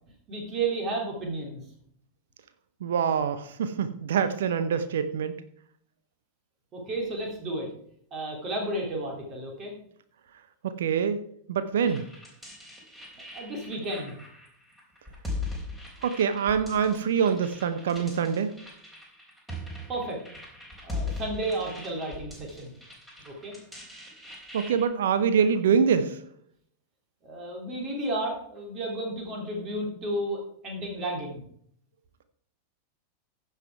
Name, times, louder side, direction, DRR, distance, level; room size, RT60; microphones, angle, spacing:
voice 1, 0.3-1.6 6.7-7.7 8.1-9.7 13.3-14.2 19.9-20.2 20.8-22.7 23.3-23.5 27.2-31.4, right 2 dB, 30° right, 1 dB, 3.0 m, -32 dB
voice 2, 2.8-5.3 10.6-11.2 11.5-12.0 16.0-18.5 24.5-26.2, right 7 dB, 60° right, 11 dB, 0.8 m, -25 dB
sound 1, 11.9-24.8, left 2 dB, 5° right, 3.7 m, -40 dB
15.0 x 5.9 x 4.6 m, 0.66 s
figure-of-eight pair, 90°, 0 cm